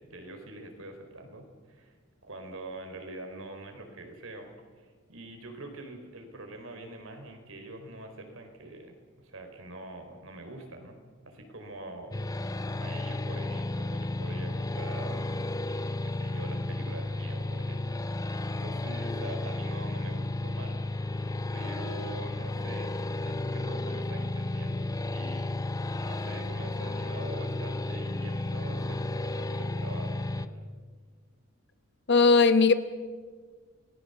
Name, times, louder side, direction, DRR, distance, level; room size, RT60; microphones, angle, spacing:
voice 1, 0.0-1.9 2.2-4.5 4.8-12.2 12.7-15.2 15.7-20.8 21.5-22.9 23.2-30.5, right 2 dB, 70° right, 4.6 m, -44 dB
sound 1, 12.1-30.5, left 2 dB, 15° left, 0.8 m, -33 dB
voice 2, 32.1-32.7, left 4 dB, 55° left, 1.4 m, -18 dB
28.5 x 19.5 x 7.1 m
head